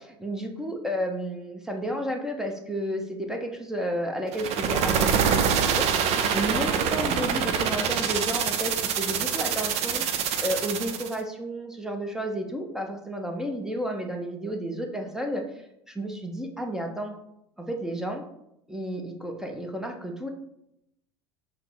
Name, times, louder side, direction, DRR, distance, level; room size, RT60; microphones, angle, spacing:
voice 1, 0.0-5.9 6.3-10.0 10.4-15.4 15.9-17.1 17.6-18.2 18.7-20.3, equal, 5° right, 2 dB, 0.7 m, -32 dB
sound 1, 4.3-11.1, right 7 dB, 50° right, 0.5 m, -25 dB
5.5 x 2.0 x 3.8 m, 0.79 s
hypercardioid pair, 75°, 14 cm